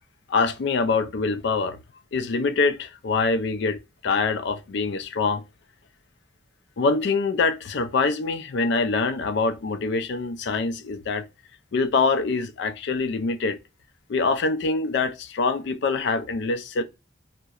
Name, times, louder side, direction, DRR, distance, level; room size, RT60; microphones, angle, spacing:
voice 1, 0.3-1.8 2.1-5.4 6.8-11.2 11.7-13.6 14.1-16.8, left 4 dB, 65° left, 0.4 m, -24 dB
2.7 x 2.1 x 2.2 m
head